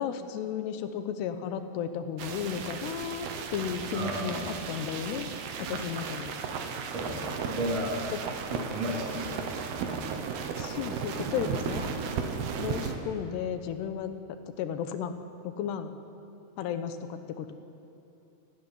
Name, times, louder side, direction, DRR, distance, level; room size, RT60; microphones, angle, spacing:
voice 1, 0.0-6.3 10.6-11.9 12.6-14.1 14.6-15.1 15.4-15.9 16.6-17.5, left 8 dB, 80° left, 9 dB, 3.1 m, -34 dB
sound 1, 2.2-13.0, right 6 dB, 75° right, 3.4 m, -35 dB
voice 2, 3.9-4.5 6.9-7.9 8.5-9.6 9.8-10.2, right 1 dB, 50° right, -2 dB, 4.7 m, -34 dB
29.0 x 12.5 x 9.8 m, 2.8 s
omnidirectional pair, 4.8 m